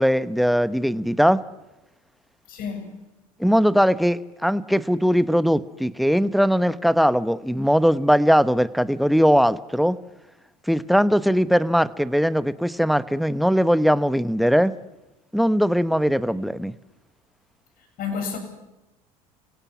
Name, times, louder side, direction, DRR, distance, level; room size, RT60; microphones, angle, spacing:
voice 1, 0.0-1.4 3.4-10.0 10.7-14.7 15.3-16.7, equal, ahead, 1.0 m, -20 dB
voice 2, 2.5-2.9 16.4-16.5 18.0-18.4, left 6 dB, 55° left, 7.9 m, -30 dB
29.5 x 17.0 x 6.2 m
hypercardioid pair, 90°, 18 cm